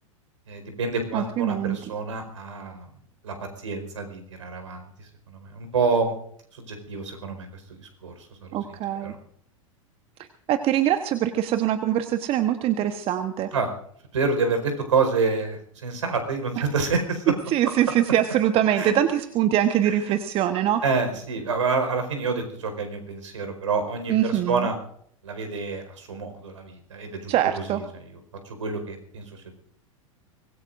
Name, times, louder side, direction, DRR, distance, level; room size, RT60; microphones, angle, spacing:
voice 1, 0.5-2.9 3.2-6.1 6.5-8.1 8.7-9.2 13.5-13.8 14.1-17.3 18.7-18.9 19.8-20.2 20.8-24.8 25.2-28.2 28.4-29.4, right 4 dB, 70° right, 6 dB, 4.9 m, -28 dB
voice 2, 1.1-1.8 8.5-9.1 10.5-13.5 17.5-20.8 24.1-24.7 27.3-27.8, right 11 dB, 35° right, 8 dB, 1.2 m, -23 dB
25.0 x 20.5 x 2.6 m, 0.65 s
figure-of-eight pair, 90°, 17 cm